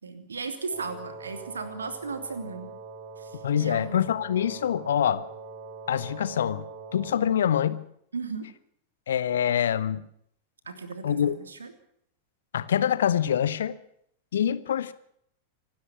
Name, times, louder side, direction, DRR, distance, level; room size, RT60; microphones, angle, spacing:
voice 1, 0.0-2.7 3.2-4.0 8.1-8.5 10.7-11.7, right 4 dB, 75° right, 9 dB, 3.1 m, -36 dB
Wind instrument woodwind instrument, 0.7-7.5, right 4 dB, 55° right, 4.3 m, -43 dB
voice 2, 3.4-5.2 5.9-6.6 6.9-7.9 9.1-10.0 11.0-11.4 12.5-13.8 14.3-14.9, left 9 dB, 65° left, 15 dB, 1.3 m, -25 dB
26.0 x 12.5 x 8.4 m, 0.69 s
figure-of-eight pair, 90°, 0 cm